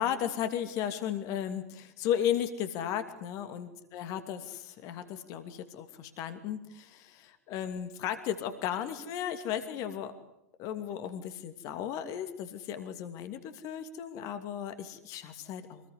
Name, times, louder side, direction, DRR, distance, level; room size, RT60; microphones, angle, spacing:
voice 1, 0.0-10.1 10.6-15.8, left 9 dB, 40° left, 9 dB, 2.7 m, -35 dB
27.5 x 20.5 x 9.8 m, 0.80 s
figure-of-eight pair, 90°, 8 cm